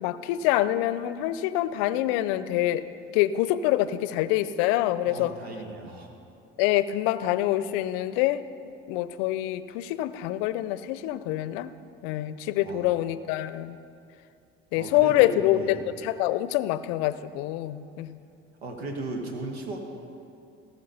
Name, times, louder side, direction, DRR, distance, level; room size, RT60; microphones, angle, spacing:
voice 1, 0.0-2.8 3.1-5.3 6.6-8.4 8.9-11.7 12.0-13.8 14.7-15.8 16.0-18.2, left 14 dB, 70° left, 15 dB, 0.6 m, -25 dB
voice 2, 5.0-6.1 12.6-13.0 14.7-15.8 18.6-19.8, right 2 dB, 85° right, 3 dB, 1.5 m, -36 dB
19.0 x 6.3 x 5.5 m, 2.5 s
hypercardioid pair, 55°, 31 cm